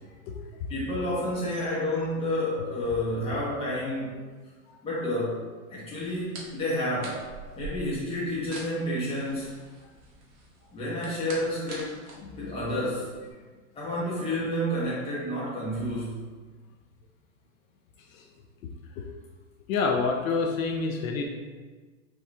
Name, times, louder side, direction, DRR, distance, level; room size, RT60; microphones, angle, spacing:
voice 1, 0.7-4.2 4.8-5.4 5.7-7.2 7.5-9.5 10.7-11.9 12.4-13.1 13.7-16.2, left 1 dB, 15° left, -8 dB, 1.2 m, -30 dB
sound 1, 6.0-13.3, right 3 dB, 40° right, 1.2 m, -45 dB
voice 2, 12.2-12.6 18.1-18.3 19.0-19.1 19.7-21.3, left 4 dB, 80° left, 2 dB, 0.6 m, -28 dB
4.5 x 3.2 x 3.4 m, 1.4 s
hypercardioid pair, 120°, 40 cm